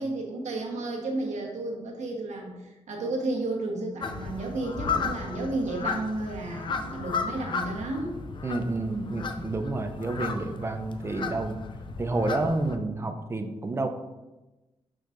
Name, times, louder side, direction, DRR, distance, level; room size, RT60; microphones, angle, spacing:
voice 1, 0.0-8.1, right 2 dB, 85° right, 0 dB, 1.2 m, -32 dB
sound 1, 4.0-12.8, left 5 dB, 45° left, 0.5 m, -34 dB
voice 2, 8.4-11.6 12.0-13.9, right 2 dB, 20° right, 6 dB, 0.5 m, -29 dB
6.2 x 6.2 x 2.6 m, 1.1 s
wide cardioid pair, 145°, 12 cm